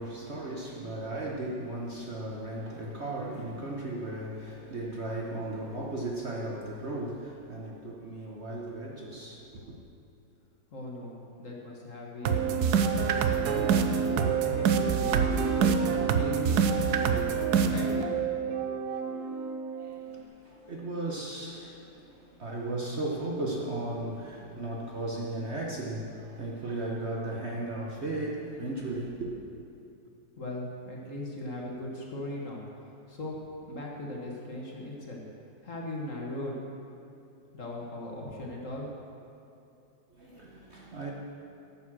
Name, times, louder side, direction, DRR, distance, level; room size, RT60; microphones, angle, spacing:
voice 1, 0.0-9.8 19.8-29.3 40.1-41.1, right 2 dB, 45° right, -2 dB, 1.2 m, -36 dB
voice 2, 10.7-13.9 14.4-17.4 17.7-18.1 30.4-32.6 33.1-35.2 35.6-36.6 37.5-38.9, left 1 dB, 45° left, -2 dB, 1.9 m, -39 dB
sound 1, 12.2-20.2, right 6 dB, 70° right, 1.2 m, -26 dB
14.0 x 7.5 x 6.2 m, 2.7 s
omnidirectional pair, 1.9 m